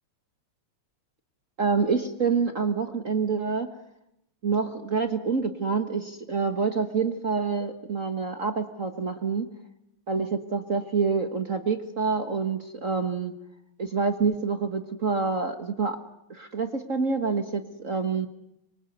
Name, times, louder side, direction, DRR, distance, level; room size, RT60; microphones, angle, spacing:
voice 1, 1.6-3.7 4.4-9.5 10.1-13.3 13.8-16.0 16.3-18.3, right 5 dB, 40° right, 8 dB, 1.2 m, -27 dB
26.0 x 23.5 x 9.3 m, 0.83 s
omnidirectional pair, 3.4 m